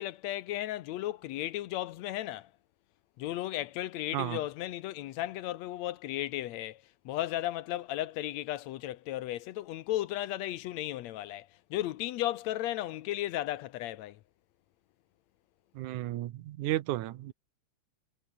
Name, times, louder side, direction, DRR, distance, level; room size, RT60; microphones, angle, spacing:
voice 1, 0.0-2.5 3.2-14.2, left 14 dB, 75° left, 1.9 m, -35 dB
voice 2, 15.8-17.3, right 14 dB, 90° right, 2.4 m, -33 dB
omnidirectional pair, 3.4 m